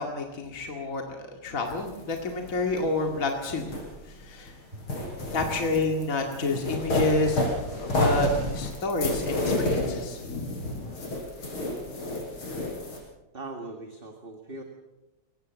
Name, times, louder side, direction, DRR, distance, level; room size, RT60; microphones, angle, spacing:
voice 1, 0.0-3.7 4.1-4.5 5.3-10.9, left 2 dB, 40° left, 2 dB, 2.5 m, -29 dB
sound 1, 1.7-4.5 4.8-13.0, left 2 dB, 75° left, 6.1 m, -30 dB
voice 2, 4.7-5.5 13.3-14.6, right 2 dB, 25° right, 4 dB, 1.9 m, -40 dB
22.5 x 19.0 x 7.5 m, 1.1 s
omnidirectional pair, 2.3 m